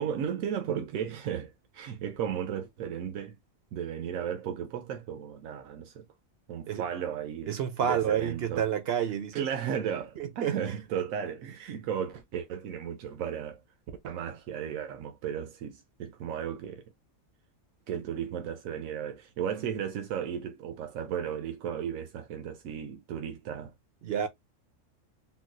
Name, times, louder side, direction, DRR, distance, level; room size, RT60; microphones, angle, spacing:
voice 1, 0.0-3.4 3.7-6.1 6.5-8.7 9.3-13.6 14.0-16.8 17.9-23.7, right 8 dB, 85° right, 1.0 m, -35 dB
voice 2, 7.5-9.5 10.2-10.6 24.0-24.3, right 9 dB, 65° right, 0.7 m, -29 dB
3.8 x 2.2 x 2.5 m
omnidirectional pair, 1.4 m